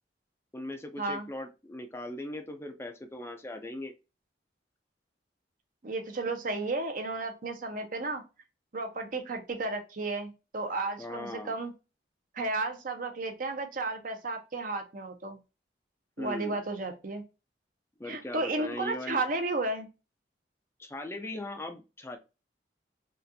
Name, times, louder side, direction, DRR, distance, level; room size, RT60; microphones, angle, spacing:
voice 1, 0.5-3.9 11.0-11.6 16.2-16.6 18.0-19.2 20.8-22.2, left 1 dB, 15° left, 5 dB, 0.4 m, -39 dB
voice 2, 5.8-8.2 8.7-11.7 12.3-15.4 16.2-17.2 18.0-19.9, right 2 dB, 50° right, 5 dB, 0.8 m, -33 dB
4.1 x 2.4 x 2.6 m, 0.28 s
head